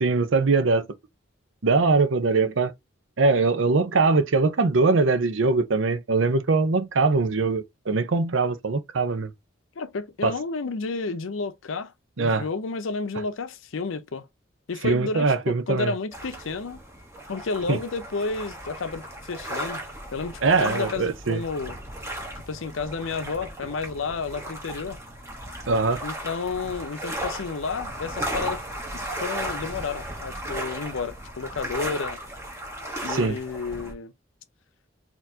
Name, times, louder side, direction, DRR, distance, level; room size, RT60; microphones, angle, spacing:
voice 1, 0.0-0.9 1.6-2.7 3.2-9.3 10.2-10.3 12.2-12.4 14.8-15.9 17.7-17.8 20.4-21.4 25.7-26.0 33.1-33.4, right 3 dB, 80° right, 0.6 m, -22 dB
voice 2, 9.8-11.9 12.2-14.3 14.7-16.8 17.3-19.8 20.1-21.8 22.5-25.0 26.0-28.6 28.9-32.2 33.0-34.1, left 4 dB, 90° left, 0.6 m, -31 dB
sound 1, 16.1-33.9, right 1 dB, 15° right, 1.1 m, -35 dB
4.3 x 2.8 x 2.8 m
head